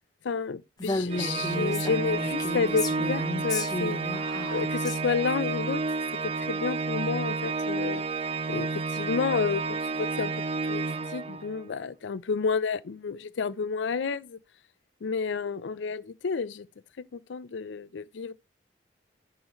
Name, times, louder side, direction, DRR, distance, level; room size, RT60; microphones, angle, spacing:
voice 1, 0.2-4.0 4.5-5.8 6.4-8.0 8.5-14.4 15.0-16.7 17.1-18.3, left 5 dB, 75° left, 0.5 m, -30 dB
Female speech woman speaking, 0.8-5.0, left 2 dB, 20° left, 0.9 m, -33 dB
Organ, 1.1-11.7, right 3 dB, 30° right, 0.4 m, -31 dB
10.5 x 3.8 x 3.0 m
head